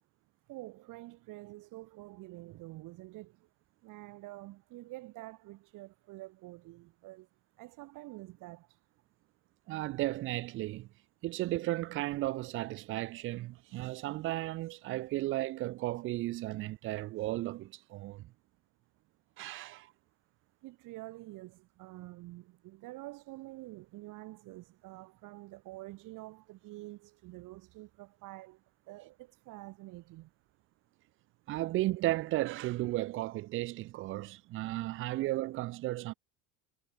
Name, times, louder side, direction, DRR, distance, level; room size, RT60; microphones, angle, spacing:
voice 1, 0.5-3.4 3.8-7.3 7.6-8.7 20.6-28.6 28.9-30.3, right 19 dB, 55° right, 6.0 m, -48 dB
voice 2, 9.7-10.9 11.2-18.3 19.4-19.9 31.5-36.1, right 17 dB, 35° right, 0.4 m, -34 dB
cardioid pair, 150°, 37 cm